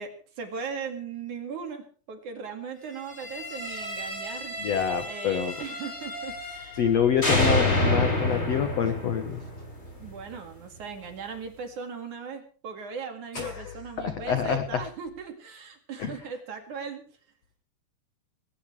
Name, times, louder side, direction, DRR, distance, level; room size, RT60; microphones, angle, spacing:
voice 1, 0.0-4.5 5.1-6.8 7.2-7.6 10.0-17.0, right 6 dB, 50° right, 5 dB, 3.1 m, -38 dB
sound 1, 3.1-6.9 7.2-10.2, left 1 dB, 15° left, 5.0 m, -29 dB
voice 2, 4.6-5.6 6.8-9.4 13.3-14.8 16.0-16.2, left 8 dB, 80° left, 8 dB, 1.4 m, -27 dB
20.5 x 17.5 x 3.3 m, 0.40 s
omnidirectional pair, 4.9 m